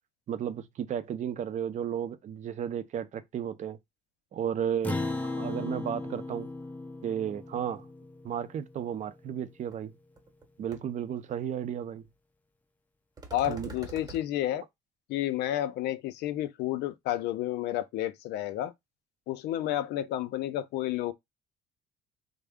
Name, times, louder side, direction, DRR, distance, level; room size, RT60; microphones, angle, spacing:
voice 1, 0.3-3.8 4.3-6.5 7.0-7.9 8.2-9.9 10.6-12.0 13.5-13.7, right 9 dB, 45° right, 0.5 m, -33 dB
Acoustic guitar, 4.8-9.5, left 2 dB, 10° left, 0.4 m, -37 dB
sound 1, 9.7-9.8 10.2-10.4 10.7-10.8 13.2-14.2, right 4 dB, 25° right, 0.9 m, -44 dB
voice 2, 13.3-14.7 15.1-18.7 19.3-21.1, left 13 dB, 80° left, 0.5 m, -31 dB
3.4 x 2.1 x 3.5 m
cardioid pair, 110°, 17 cm